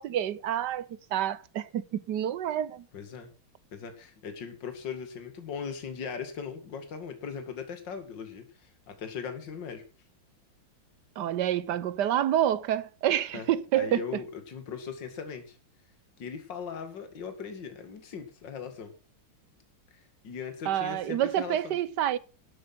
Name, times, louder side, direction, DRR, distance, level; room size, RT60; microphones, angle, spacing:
voice 1, 0.0-2.8 11.2-14.0 20.7-22.2, right 11 dB, 65° right, 1.3 m, -28 dB
voice 2, 2.9-3.3 3.7-9.8 13.3-13.5 13.7-15.6 16.2-18.9 19.9-21.8, left 6 dB, 60° left, 2.7 m, -39 dB
13.0 x 8.1 x 6.1 m
omnidirectional pair, 2.3 m